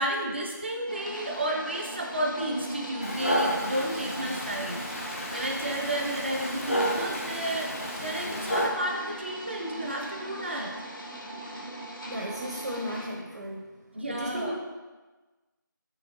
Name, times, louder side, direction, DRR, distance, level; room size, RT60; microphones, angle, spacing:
voice 1, 0.0-7.7 8.0-10.7 13.9-14.6, right 1 dB, 35° right, 0 dB, 0.5 m, -32 dB
sound 1, 0.9-13.1, right 1 dB, 80° left, 0.9 m, -40 dB
Dog, 3.0-8.7, equal, 40° left, 0.5 m, -31 dB
voice 2, 12.1-13.7 14.1-14.6, equal, 70° right, 0 dB, 0.7 m, -35 dB
5.8 x 3.0 x 2.6 m, 1.3 s
figure-of-eight pair, 170°, 11 cm